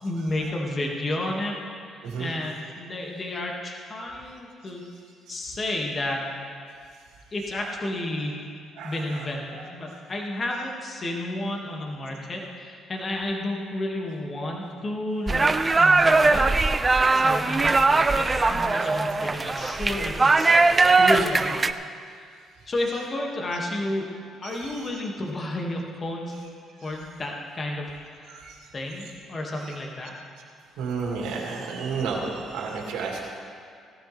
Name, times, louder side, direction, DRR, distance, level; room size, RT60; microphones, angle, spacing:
voice 1, 0.0-1.6 1.9-4.8 5.3-6.3 7.3-8.4 8.8-16.5 16.8-20.5 21.0-21.6 22.7-24.1 24.4-26.4 26.8-27.9 28.1-28.3 28.7-30.1, left 1 dB, 40° left, -1 dB, 2.1 m, -31 dB
voice 2, 8.7-9.6 24.4-24.9 26.8-26.9 28.2-28.7 28.9-29.1 29.6-29.8 30.8-33.2, right 5 dB, 70° right, -1 dB, 2.4 m, -33 dB
sound 1, 15.3-21.7, right 3 dB, 30° right, 0.6 m, -20 dB
18.0 x 13.0 x 3.5 m, 2.2 s
hypercardioid pair, 50°, 0 cm